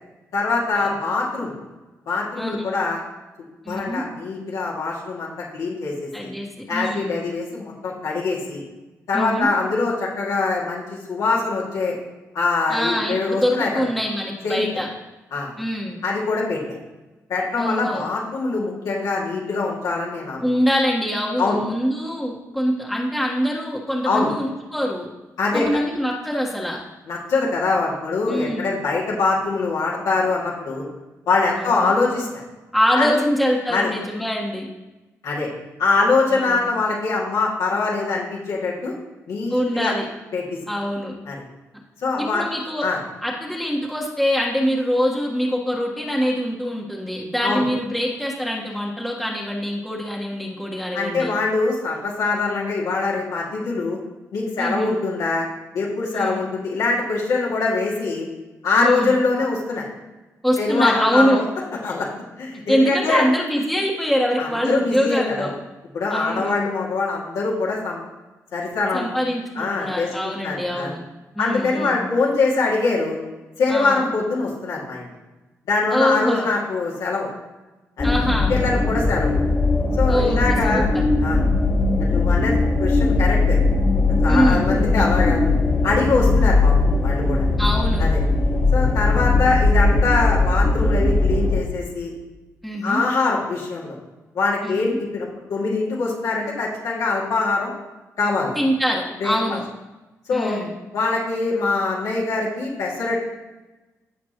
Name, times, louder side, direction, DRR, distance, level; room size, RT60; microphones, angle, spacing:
voice 1, 0.3-1.6 2.1-3.0 3.7-6.3 6.7-8.6 9.1-11.9 12.3-13.7 14.4-14.6 15.3-15.5 16.0-16.6 17.3-20.4 21.4-21.6 24.0-24.3 25.4-25.6 27.1-30.8 31.3-32.4 33.0-33.2 33.7-33.9 35.2-35.5 35.8-38.9 39.3-39.9 40.3-40.6 41.3-41.4 42.0-42.4 42.8-43.0 47.4-47.6 50.9-54.0 54.3-55.5 55.7-58.3 58.6-59.9 60.6-61.4 61.8-62.1 62.4-63.3 64.4-65.5 65.9-68.0 68.5-69.1 69.6-70.9 71.4-73.2 73.6-75.1 75.7-77.3 78.0-78.1 78.5-79.4 79.9-80.9 81.2-81.4 82.0-83.6 84.2-85.4 85.8-87.5 88.0-88.2 88.7-92.1 92.8-94.0 94.3-97.7 98.2-98.6 99.2-99.3 100.3-100.6 100.9-103.2, left 3 dB, 80° left, -5 dB, 2.3 m, -23 dB
voice 2, 2.3-2.7 3.6-4.0 6.1-7.1 9.1-9.5 12.7-14.9 15.6-16.0 17.6-18.1 20.4-25.1 25.5-26.8 28.3-28.7 31.6-31.9 32.7-34.7 36.3-36.6 39.5-40.1 40.7-41.1 42.3-42.9 43.2-51.3 54.6-54.9 56.1-56.4 58.8-59.1 60.4-61.4 62.7-65.5 66.1-66.6 68.9-71.0 71.3-72.1 73.7-74.0 75.9-76.5 78.0-78.5 80.1-80.4 80.6-81.0 84.3-84.7 87.6-88.1 92.6-93.0 94.6-95.0 98.5-99.6 100.3-100.7, equal, ahead, -3 dB, 1.4 m, -24 dB
sound 1, 78.0-91.6, left 3 dB, 35° left, 1.8 m, -19 dB
15.5 x 5.2 x 3.0 m, 1.1 s
cardioid pair, 75°, 6 cm